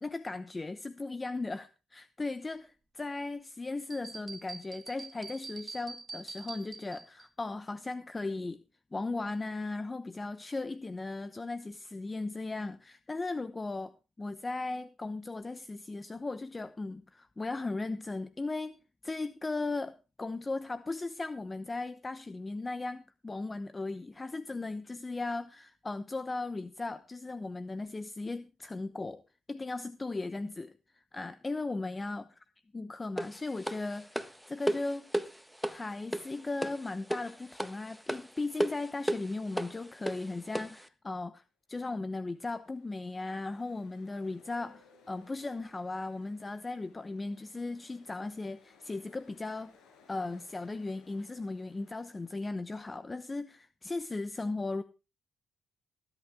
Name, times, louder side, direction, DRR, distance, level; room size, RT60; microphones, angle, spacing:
voice 1, 0.0-8.6 8.9-18.8 19.0-29.2 29.5-32.2 32.7-35.1 35.7-41.4 41.7-49.7 50.1-54.8, left 3 dB, 20° left, 0.9 m, -37 dB
sound 1, 3.9-7.3, right 4 dB, 30° right, 1.8 m, -45 dB
sound 2, 33.2-40.9, equal, ahead, 1.3 m, -36 dB
Ocean, 42.0-52.9, left 4 dB, 80° left, 6.6 m, -63 dB
17.0 x 11.5 x 3.5 m
cardioid pair, 90°, 0 cm